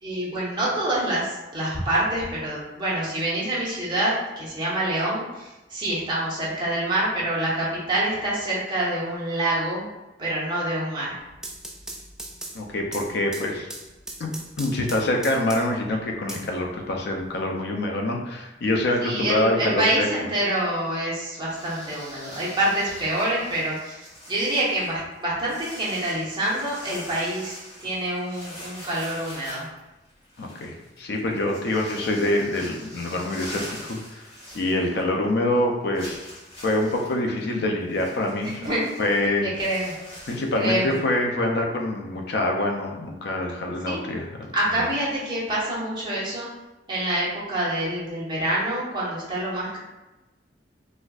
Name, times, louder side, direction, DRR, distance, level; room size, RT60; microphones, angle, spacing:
voice 1, 0.0-9.9 10.2-11.2 19.0-29.7 38.6-38.8 39.4-39.9 40.6-41.0 43.8-44.0 44.5-46.5 46.9-49.8, right 1 dB, 25° right, -7 dB, 1.1 m, -26 dB
sound 1, 11.2-15.8 16.3-17.3, right 1 dB, 5° right, 0.3 m, -39 dB
voice 2, 12.5-13.7 14.2-14.3 14.6-20.1 30.4-36.3 36.6-38.6 39.0-39.5 40.3-44.5 44.8-44.9, left 1 dB, 65° left, 1 dB, 0.5 m, -25 dB
sound 2, 21.5-35.2 35.5-35.6 35.9-41.1, equal, 35° left, 1.4 m, -43 dB
4.1 x 2.5 x 2.4 m, 1.0 s
head